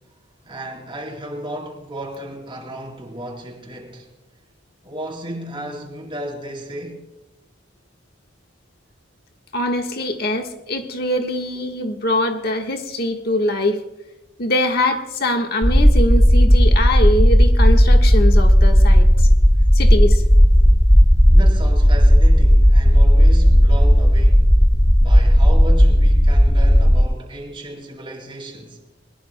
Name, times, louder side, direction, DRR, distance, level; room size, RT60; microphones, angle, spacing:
voice 1, 0.4-4.1 4.8-7.1 21.3-24.5 25.0-28.8, right 1 dB, 30° right, 3.9 m, -34 dB
voice 2, 9.5-13.8 14.4-19.3 19.7-20.2, left 1 dB, 55° left, 1.4 m, -23 dB
sound 1, 15.6-27.0, equal, 5° left, 0.5 m, -12 dB
21.5 x 21.5 x 2.2 m
head